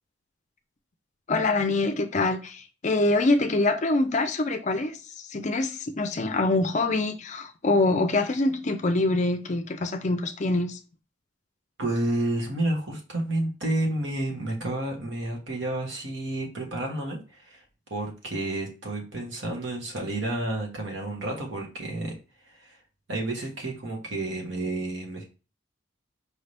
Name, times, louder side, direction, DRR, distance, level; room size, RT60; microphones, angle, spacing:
voice 1, 1.3-10.8, left 2 dB, 35° left, 0.5 m, -25 dB
voice 2, 11.8-17.6 17.9-22.1 22.6-22.8 23.1-25.2, right 1 dB, 70° right, 1.3 m, -30 dB
4.8 x 2.7 x 3.3 m
head